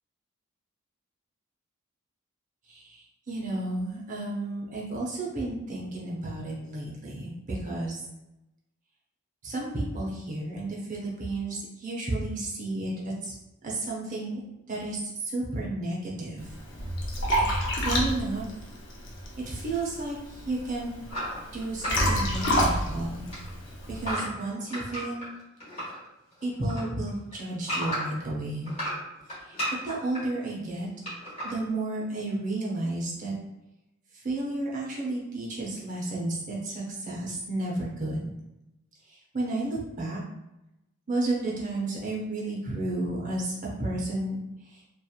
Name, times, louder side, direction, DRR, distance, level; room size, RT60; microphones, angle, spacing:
voice 1, 2.7-8.0 9.4-13.4 13.6-14.4 14.7-16.5 17.8-18.4 19.5-20.9 21.5-23.2 23.9-25.3 26.4-28.7 29.4-29.5 29.8-30.9 31.4-33.3 34.1-38.3 39.1-40.2 41.1-44.8, right 2 dB, 35° right, -3 dB, 0.7 m, -32 dB
Liquid, 16.4-24.1, equal, 55° left, 0.6 m, -29 dB
sound 1, 21.1-23.0 23.2-26.0 26.3-28.3 28.7-30.2 31.0-31.5, equal, 30° left, 1.2 m, -34 dB
2.9 x 2.4 x 2.4 m, 0.92 s
head